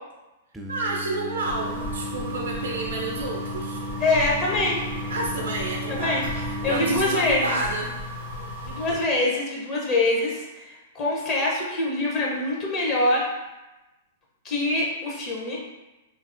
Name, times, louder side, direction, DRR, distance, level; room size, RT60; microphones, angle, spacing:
Singing, 0.5-7.1, equal, 10° right, 0.3 m, -35 dB
voice 1, 0.7-3.8 5.1-7.9, right 2 dB, 80° right, -1 dB, 0.4 m, -30 dB
sound 1, 1.4-8.9, left 2 dB, 65° left, 1.2 m, -35 dB
voice 2, 4.0-4.9 5.9-6.2 6.6-7.6 8.6-13.3 14.4-15.6, left 2 dB, 35° left, -3 dB, 0.7 m, -24 dB
3.3 x 2.0 x 2.5 m, 1.0 s
hypercardioid pair, 110°, 0 cm